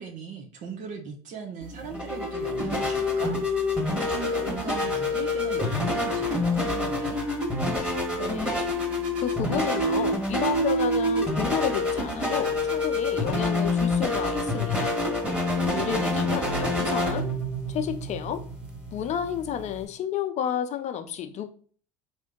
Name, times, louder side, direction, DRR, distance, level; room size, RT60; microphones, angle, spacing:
voice 1, 0.0-3.3 3.6-3.7 4.1-7.2 15.7-16.3, right 6 dB, 50° right, 0.8 m, -38 dB
sound 1, 1.6-19.8, left 2 dB, 5° right, 1.5 m, -27 dB
voice 2, 8.2-8.7 9.2-15.0 15.7-17.3 17.7-18.4 18.9-21.5, left 9 dB, 45° left, 0.6 m, -31 dB
3.6 x 2.6 x 3.7 m
hypercardioid pair, 75°, 16 cm